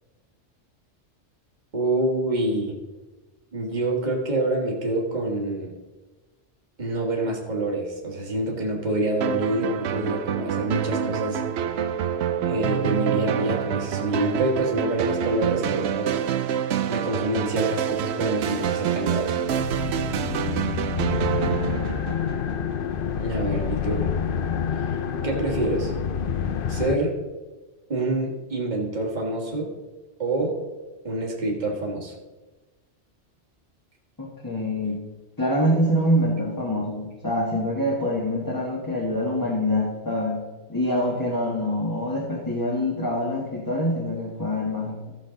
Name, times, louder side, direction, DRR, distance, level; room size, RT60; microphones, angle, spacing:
voice 1, 1.7-2.8 3.5-5.7 6.8-11.4 12.4-16.2 16.9-19.4 23.2-24.1 24.9-25.0 25.2-25.9 26.7-27.2 27.9-29.7 30.2-30.6 31.0-32.1, right 1 dB, 40° right, 0 dB, 1.7 m, -26 dB
sound 1, 9.2-22.7, right 9 dB, 70° right, 0.9 m, -27 dB
sound 2, 19.5-27.0, left 7 dB, 55° left, 0.7 m, -28 dB
voice 2, 21.4-22.0 34.2-35.0 35.4-40.4 40.7-45.0, equal, 20° left, -4 dB, 1.4 m, -25 dB
14.5 x 6.5 x 3.8 m, 1.2 s
omnidirectional pair, 1.2 m